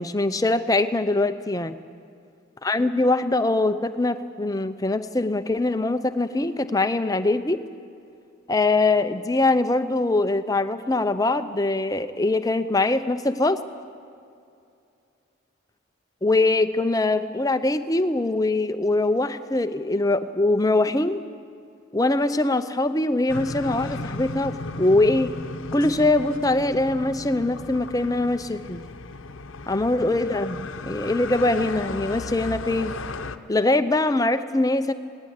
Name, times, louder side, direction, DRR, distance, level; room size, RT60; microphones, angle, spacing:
voice 1, 0.0-1.7 2.6-7.6 8.5-13.6 16.2-21.2 21.9-25.3 25.7-28.8 29.7-32.9 33.5-34.9, left 2 dB, 15° left, 10 dB, 0.6 m, -22 dB
sound 1, 23.3-33.4, left 3 dB, 75° left, 0.9 m, -35 dB
18.5 x 18.0 x 9.8 m, 2.5 s
head